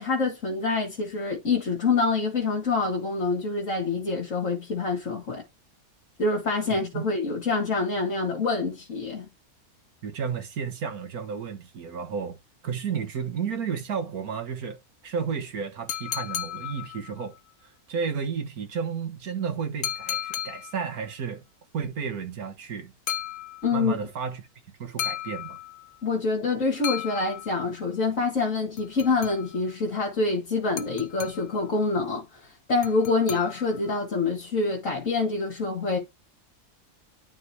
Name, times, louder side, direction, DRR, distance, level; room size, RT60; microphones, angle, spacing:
voice 1, 0.0-5.4 6.2-9.3 23.6-23.9 26.0-32.4 32.7-36.0, left 3 dB, 55° left, 2.2 m, -26 dB
voice 2, 6.7-7.1 10.0-12.4 12.6-14.8 15.0-17.4 17.6-21.4 21.7-22.9 23.7-24.5 24.8-25.6, right 6 dB, 70° right, 1.9 m, -32 dB
sound 1, 15.9-17.4 19.8-21.0 23.1-24.0 25.0-26.0 26.8-27.9 28.8-29.7 30.8-31.7 32.8-33.9, left 10 dB, 85° left, 1.3 m, -35 dB
11.5 x 4.3 x 2.9 m
omnidirectional pair, 1.6 m